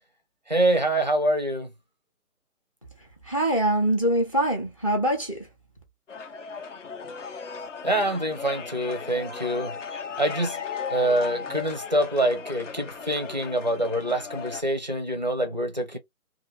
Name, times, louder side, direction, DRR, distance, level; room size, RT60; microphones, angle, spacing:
voice 1, 0.5-1.7 7.8-9.7 10.2-10.6 10.9-16.0, right 1 dB, 30° right, 0.5 m, -25 dB
voice 2, 3.3-5.4, right 1 dB, 25° left, 0.7 m, -23 dB
sound 1, 6.1-14.6, left 6 dB, 55° left, 0.8 m, -36 dB
2.6 x 2.5 x 2.7 m
figure-of-eight pair, 155°, 45 cm